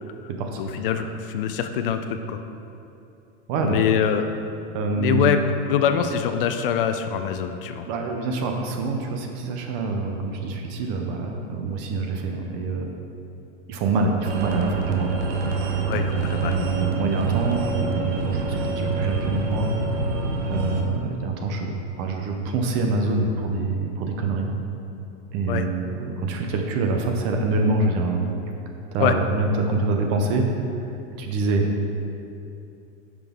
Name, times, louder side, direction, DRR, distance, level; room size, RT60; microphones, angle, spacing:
voice 1, 0.6-2.4 3.6-4.3 4.9-5.4 5.7-7.9 15.9-16.6 25.5-25.7 29.0-29.1, left 8 dB, 50° left, 8 dB, 0.5 m, -24 dB
voice 2, 3.5-3.8 4.7-5.4 7.9-12.9 13.7-15.1 16.3-19.7 20.5-24.5 25.3-28.3 28.9-30.5 31.2-31.7, right 3 dB, 30° right, 3 dB, 0.5 m, -25 dB
sound 1, 14.2-20.8, right 4 dB, 75° right, 1.1 m, -26 dB
9.0 x 6.1 x 3.6 m, 2.7 s
supercardioid pair, 165°, 35 cm